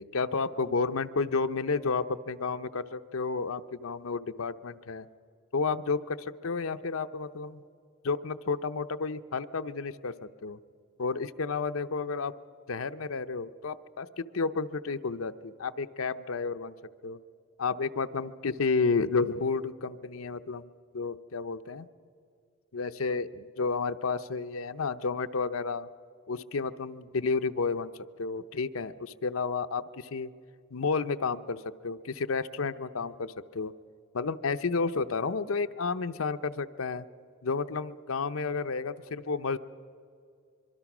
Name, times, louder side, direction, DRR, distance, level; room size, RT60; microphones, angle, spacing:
voice 1, 0.0-5.1 5.5-7.6 8.0-10.1 10.4-10.6 11.0-12.3 12.7-16.7 17.0-17.2 17.6-20.7 20.9-21.9 22.7-25.9 26.3-30.3 30.7-33.7 34.1-37.1 37.4-39.6, left 4 dB, 75° left, 10 dB, 0.7 m, -31 dB
24.5 x 23.0 x 6.1 m, 2.3 s
head